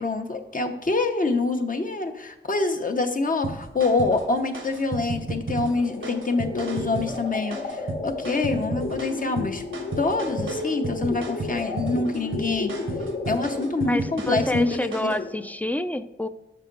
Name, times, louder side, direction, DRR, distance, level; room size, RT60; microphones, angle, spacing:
voice 1, 0.0-9.6 10.0-12.8 13.3-15.1, left 3 dB, 45° left, 5 dB, 0.8 m, -26 dB
sound 1, 3.4-15.2, right 2 dB, 85° right, 1.0 m, -34 dB
sound 2, 5.6-15.5, left 3 dB, 65° left, 1.1 m, -34 dB
voice 2, 13.8-16.3, left 1 dB, 10° left, 12 dB, 0.4 m, -27 dB
6.6 x 5.7 x 3.9 m, 0.99 s
wide cardioid pair, 80°, 20 cm